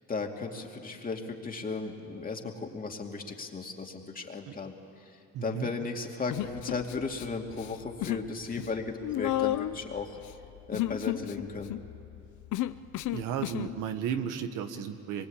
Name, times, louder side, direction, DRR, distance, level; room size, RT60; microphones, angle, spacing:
voice 1, 0.1-4.7 5.4-10.2 10.7-11.7, left 4 dB, 30° left, 2 dB, 2.6 m, -36 dB
voice 2, 5.3-5.7 13.1-15.3, right 8 dB, 85° right, 7 dB, 1.6 m, -34 dB
Human voice, 6.3-7.3 7.5-8.3 8.5-13.7, left 15 dB, 75° left, 0.8 m, -33 dB
24.5 x 22.5 x 8.7 m, 2.7 s
cardioid pair, 100°, 30 cm